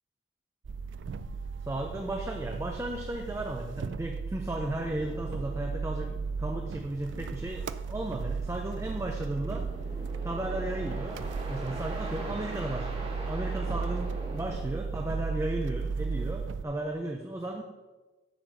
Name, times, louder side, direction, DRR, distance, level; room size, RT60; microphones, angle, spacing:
sound 1, 0.6-16.6, right 5 dB, 90° right, 0.4 m, -35 dB
voice 1, 1.6-6.1 6.4-9.7 10.2-17.6, right 1 dB, 15° right, 2 dB, 0.5 m, -35 dB
sound 2, 4.8-14.6, right 1 dB, 30° right, 1.7 m, -44 dB
7.8 x 5.0 x 6.2 m, 1.2 s
head